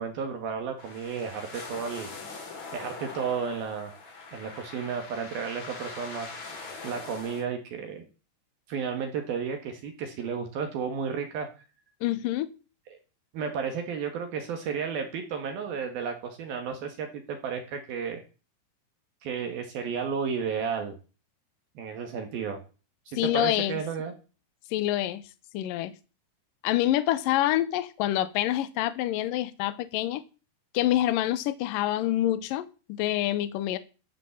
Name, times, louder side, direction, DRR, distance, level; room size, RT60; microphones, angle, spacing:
voice 1, 0.0-2.1 2.7-3.9 4.3-6.3 6.8-8.1 8.7-11.5 12.9-13.0 13.3-18.2 19.2-20.9 21.8-22.6 23.1-24.1, right 6 dB, 65° right, 3.3 m, -32 dB
sound 1, 0.8-7.4, left 4 dB, 45° left, 4.6 m, -42 dB
voice 2, 12.0-12.5 23.2-23.8 24.7-25.2 25.5-25.9 26.6-30.2 30.7-33.8, left 14 dB, 70° left, 2.3 m, -26 dB
14.0 x 7.5 x 7.2 m
omnidirectional pair, 5.0 m